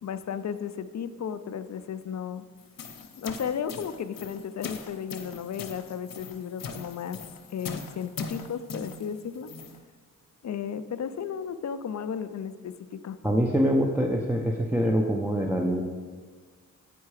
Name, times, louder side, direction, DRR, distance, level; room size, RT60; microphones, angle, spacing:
voice 1, 0.0-2.5 3.2-7.2 7.5-9.5 10.4-13.2, left 7 dB, 55° left, 12 dB, 0.5 m, -34 dB
sound 1, 2.6-9.8, left 4 dB, 80° left, 0.8 m, -41 dB
voice 2, 13.2-15.8, equal, 5° right, 0 dB, 0.7 m, -24 dB
8.4 x 4.6 x 4.8 m, 1.5 s
cardioid pair, 55°, 33 cm